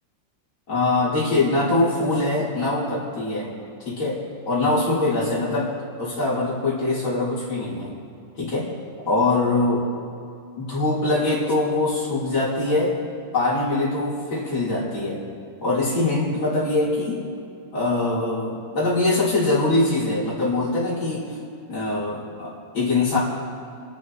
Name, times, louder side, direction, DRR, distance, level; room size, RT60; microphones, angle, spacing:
voice 1, 0.7-3.5 3.8-5.7 6.0-7.9 8.4-8.7 9.1-9.9 10.6-13.0 13.3-15.2 15.6-17.2 17.7-21.3 21.7-23.2, left 2 dB, 85° left, -8 dB, 4.9 m, -23 dB
28.5 x 12.0 x 3.2 m, 2.5 s
omnidirectional pair, 2.1 m